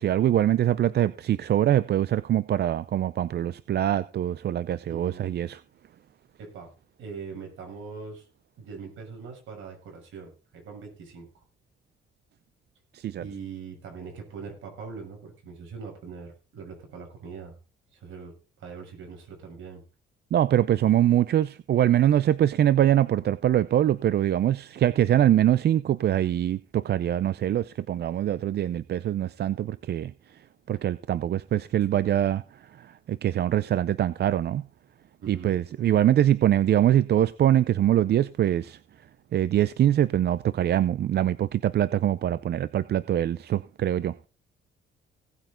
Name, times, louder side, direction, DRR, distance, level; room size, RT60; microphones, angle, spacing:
voice 1, 0.0-5.6 12.9-13.2 20.3-34.7 35.3-38.8 39.3-44.2, right 11 dB, 55° right, 0.5 m, -23 dB
voice 2, 4.9-5.3 6.4-6.7 7.0-8.2 8.6-11.3 13.2-17.5 17.9-19.8 35.2-35.5, right 5 dB, 80° right, 6.7 m, -41 dB
17.5 x 8.9 x 3.9 m
cardioid pair, 90°, 20 cm